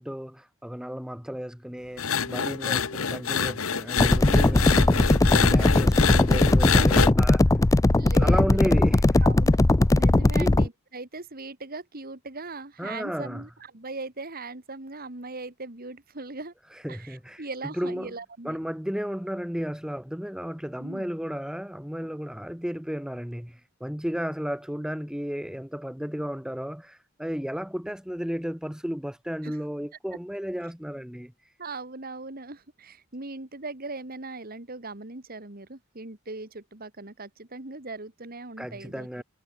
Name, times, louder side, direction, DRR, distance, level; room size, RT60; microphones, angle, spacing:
voice 1, 0.0-7.4 8.2-9.0 10.4-10.6 12.8-13.4 16.8-17.4 17.8-18.1 18.4-31.3 38.6-39.2, equal, 5° right, 1.1 m, -33 dB
sound 1, 2.0-7.1, left 6 dB, 90° left, 1.2 m, -26 dB
sound 2, 4.0-10.7, left 2 dB, 15° left, 0.4 m, -19 dB
voice 2, 8.0-8.7 9.2-9.6 9.9-16.5 16.9-18.6 20.8-21.1 29.4-29.6 31.6-39.2, right 3 dB, 45° right, 2.4 m, -39 dB
head